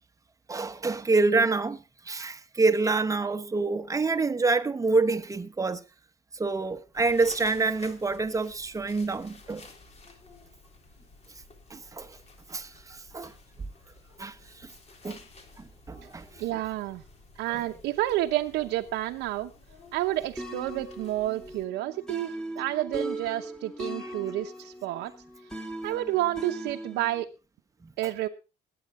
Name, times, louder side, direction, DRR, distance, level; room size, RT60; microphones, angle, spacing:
voice 1, 0.5-5.8 6.3-9.7 11.7-12.2 12.5-13.3 14.2-14.7 15.0-15.2 15.6-16.4 17.5-17.6 27.8-27.9, right 3 dB, 20° right, 1.1 m, -27 dB
sound 1, 6.9-21.7, left 3 dB, 40° left, 3.5 m, -53 dB
voice 2, 16.4-17.0 17.4-19.5 19.9-25.1 25.4-25.5 25.8-27.3 28.0-28.3, right 15 dB, 85° right, 0.9 m, -30 dB
sound 2, 20.4-27.2, right 1 dB, 5° left, 2.2 m, -39 dB
21.0 x 8.7 x 3.6 m
cardioid pair, 110°, 17 cm